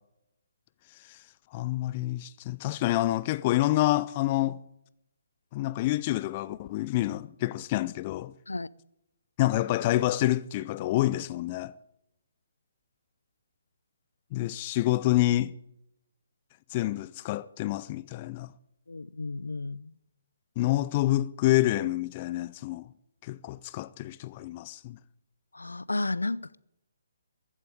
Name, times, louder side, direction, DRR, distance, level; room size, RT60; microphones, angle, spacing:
voice 1, 1.5-4.6 5.5-8.3 9.4-11.7 14.3-15.5 16.7-18.5 20.6-22.9 23.2-25.0, left 16 dB, 30° left, 0.4 m, -27 dB
voice 2, 18.9-19.9 25.5-26.6, left 2 dB, 85° left, 0.5 m, -32 dB
15.0 x 8.2 x 9.1 m
figure-of-eight pair, 140°, 0 cm